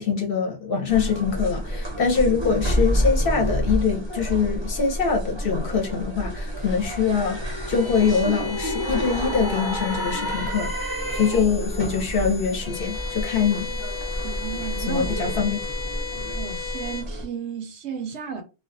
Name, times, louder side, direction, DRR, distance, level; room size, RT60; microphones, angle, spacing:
voice 1, 0.0-13.7 14.9-15.6, left 6 dB, 50° left, 0.8 m, -24 dB
sound 1, 0.9-17.3, equal, 30° right, 0.5 m, -29 dB
sound 2, 5.7-11.7, left 1 dB, 25° left, 0.5 m, -33 dB
sound 3, 6.6-17.0, left 5 dB, 85° left, 1.0 m, -36 dB
voice 2, 14.2-15.2 16.3-18.4, right 7 dB, 65° right, 0.8 m, -33 dB
2.3 x 2.3 x 2.5 m
omnidirectional pair, 1.4 m